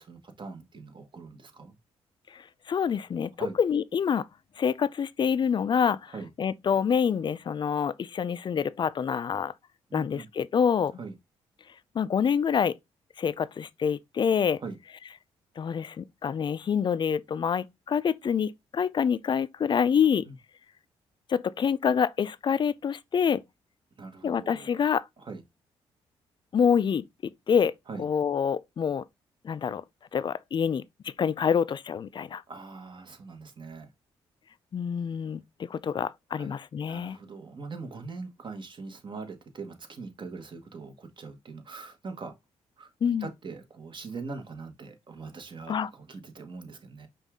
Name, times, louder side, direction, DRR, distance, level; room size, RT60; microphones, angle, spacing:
voice 1, 0.0-1.8 3.4-3.5 6.1-6.3 9.9-10.3 11.0-11.1 14.6-14.8 20.2-20.3 24.0-24.8 25.2-25.4 27.9-28.1 32.5-33.9 36.4-36.5 36.9-42.3 42.8-47.1, right 4 dB, 45° right, 1.3 m, -42 dB
voice 2, 2.3-4.3 4.6-6.1 6.4-9.5 9.9-11.0 12.0-12.7 13.2-14.6 15.6-20.3 21.3-23.4 24.2-25.0 26.5-27.0 27.5-27.7 28.0-29.0 29.4-29.8 30.1-32.4 34.7-35.4 35.7-37.2 43.0-43.3 45.7-45.9, left 7 dB, 45° left, 0.4 m, -26 dB
5.3 x 2.5 x 3.6 m
cardioid pair, 65°, 11 cm